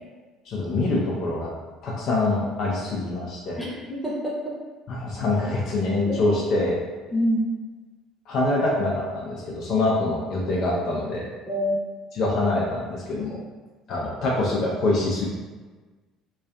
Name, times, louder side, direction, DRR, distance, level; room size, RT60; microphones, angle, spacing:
voice 1, 0.5-1.5 1.8-3.6 4.9-6.8 8.3-11.3 12.1-13.4 13.9-15.3, left 2 dB, 55° left, -4 dB, 0.5 m, -25 dB
voice 2, 3.6-4.6 6.0-6.2 7.1-7.4 11.5-11.8, equal, 5° left, -5 dB, 0.8 m, -26 dB
2.4 x 2.3 x 2.3 m, 1.3 s
figure-of-eight pair, 55°, 0 cm